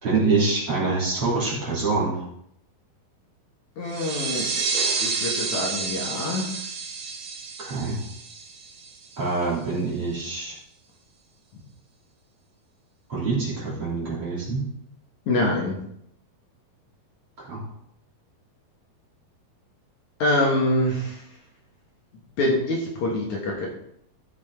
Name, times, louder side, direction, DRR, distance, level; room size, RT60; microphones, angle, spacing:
voice 1, 0.0-2.2 7.6-8.0 9.2-10.6 13.1-14.6 17.4-17.6, right 3 dB, 35° right, -6 dB, 3.5 m, -25 dB
voice 2, 3.8-4.5 4.7-6.5 15.3-15.8 20.2-21.2 22.4-23.7, left 1 dB, 55° left, -2 dB, 2.7 m, -25 dB
sound 1, 3.9-9.2, right 4 dB, 70° right, 3.1 m, -30 dB
13.5 x 7.5 x 3.7 m, 0.73 s
omnidirectional pair, 4.4 m